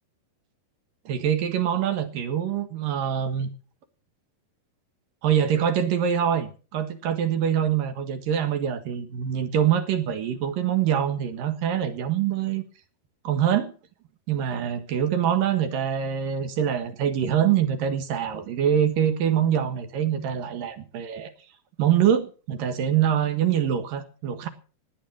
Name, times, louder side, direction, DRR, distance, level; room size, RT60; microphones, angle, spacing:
voice 1, 1.1-3.5 5.2-12.6 13.2-13.7 14.3-21.3 21.8-24.5, right 9 dB, 65° right, 3.2 m, -24 dB
18.5 x 8.8 x 6.1 m
omnidirectional pair, 4.3 m